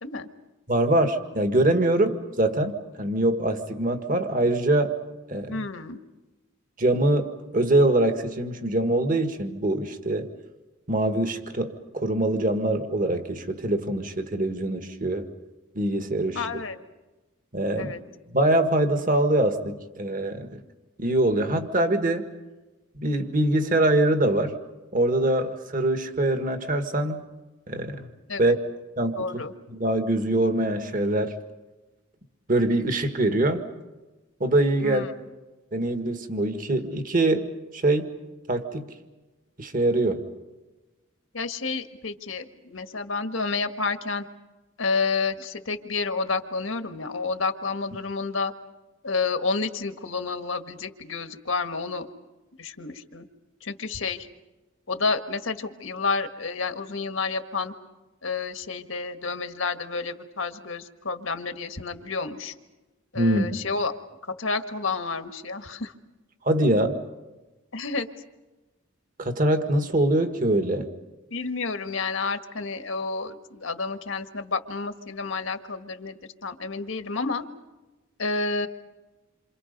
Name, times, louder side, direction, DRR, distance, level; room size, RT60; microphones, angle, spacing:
voice 1, 0.7-4.9 5.3-5.6 6.8-10.3 10.9-15.3 15.8-16.4 17.5-17.9 18.3-20.6 21.0-22.3 23.0-24.6 24.9-27.3 27.7-28.1 28.4-28.6 29.0-31.4 32.5-33.7 34.4-35.0 35.7-38.1 38.5-39.0 39.6-40.3 63.2-63.6 66.4-67.0 69.2-70.9, right 1 dB, 40° right, 7 dB, 1.8 m, -24 dB
voice 2, 5.5-6.0 16.3-16.8 17.7-18.0 28.3-28.6 29.2-29.5 34.8-35.1 41.3-44.3 44.8-48.5 49.0-52.1 52.6-53.3 53.6-54.3 54.9-57.7 58.2-62.6 63.1-63.9 64.2-65.9 67.7-68.1 71.3-77.5 78.2-78.7, left 4 dB, 75° left, 7 dB, 1.6 m, -30 dB
28.0 x 26.5 x 5.3 m, 1.1 s
head